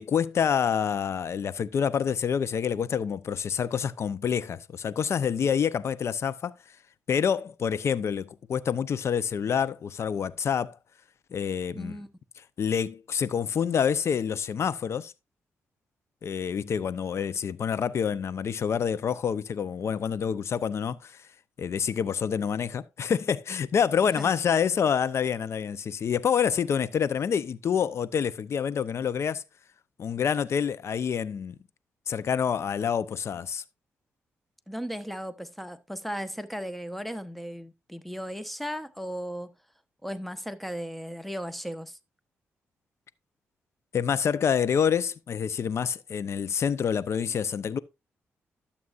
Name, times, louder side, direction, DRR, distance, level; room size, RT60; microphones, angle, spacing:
voice 1, 0.0-6.5 7.1-10.8 11.3-12.0 12.6-15.1 16.2-21.2 21.6-29.4 30.0-31.5 32.1-33.6 43.9-47.8, left 7 dB, 60° left, 0.7 m, -27 dB
voice 2, 11.7-12.1 24.1-24.3 34.7-39.5 40.0-42.0, equal, ahead, 1.0 m, -36 dB
13.0 x 6.9 x 2.5 m
supercardioid pair, 60°, 5 cm